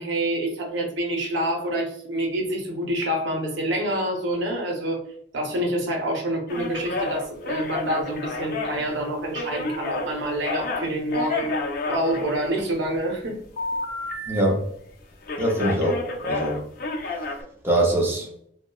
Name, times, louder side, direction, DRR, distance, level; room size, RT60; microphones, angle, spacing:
voice 1, 0.0-5.0 5.3-11.6 11.9-13.4, right 1 dB, 70° right, 1 dB, 0.6 m, -27 dB
sound 1, 6.5-10.1 10.4-12.9 13.6-14.9 15.2-17.4, left 3 dB, 55° left, 0.4 m, -30 dB
voice 2, 14.3-14.6 15.4-16.6 17.6-18.3, right 1 dB, 15° right, -2 dB, 0.5 m, -23 dB
2.7 x 2.1 x 2.2 m, 0.67 s
head